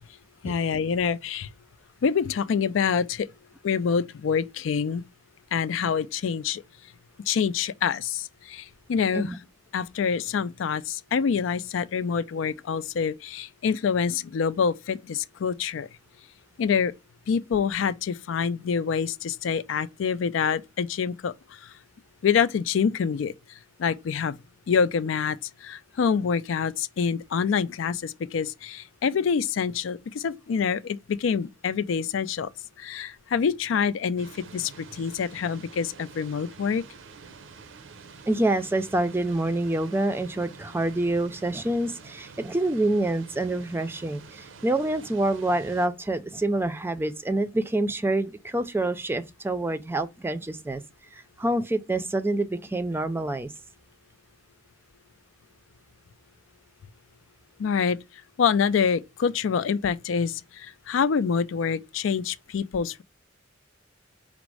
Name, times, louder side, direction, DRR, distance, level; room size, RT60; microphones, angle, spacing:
voice 1, 0.4-1.5 2.0-3.3 3.6-5.0 5.5-6.6 7.3-9.3 9.7-15.9 16.6-16.9 17.3-21.3 22.2-23.3 23.8-24.4 24.7-32.5 32.8-34.3 34.5-36.8 57.6-58.0 58.4-63.0, left 6 dB, 85° left, 0.4 m, -26 dB
sound 1, 34.2-45.9, right 5 dB, 80° right, 0.6 m, -48 dB
voice 2, 38.3-50.8 51.1-53.5, right 2 dB, 10° right, 0.4 m, -27 dB
5.0 x 2.0 x 4.6 m
head